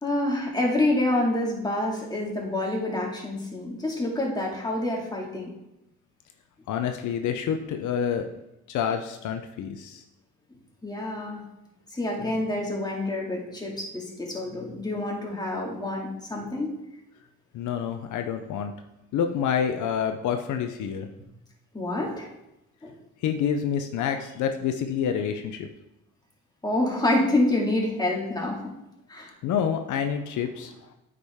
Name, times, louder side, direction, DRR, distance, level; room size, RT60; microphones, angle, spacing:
voice 1, 0.0-5.5 10.8-11.4 11.9-16.7 21.7-22.3 22.8-23.0 26.6-28.7 29.1-29.3, left 1 dB, 15° left, -2 dB, 2.2 m, -27 dB
voice 2, 6.7-8.3 8.7-10.0 17.5-18.7 19.1-21.1 23.2-25.7 29.4-30.7, left 8 dB, 75° left, 6 dB, 0.7 m, -28 dB
8.6 x 5.0 x 3.6 m, 0.88 s
cardioid pair, 90°, 30 cm